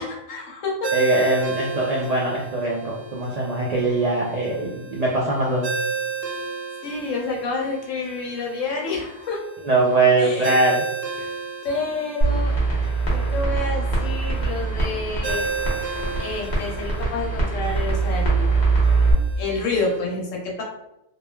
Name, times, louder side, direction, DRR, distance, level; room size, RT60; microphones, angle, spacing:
voice 1, 0.0-0.9 6.8-9.4 10.2-10.6 11.6-12.5 13.1-15.5 16.2-18.5 19.4-20.6, left 3 dB, 80° left, -1 dB, 1.1 m, -28 dB
Ringtone, 0.8-20.0, right 4 dB, 65° right, 0.7 m, -33 dB
voice 2, 0.9-5.7 9.6-10.8 11.2-11.3, right 2 dB, 80° right, -4 dB, 0.3 m, -22 dB
sound 1, 12.2-19.1, right 3 dB, 40° left, 0.8 m, -23 dB
3.0 x 2.2 x 2.2 m, 0.86 s
omnidirectional pair, 1.3 m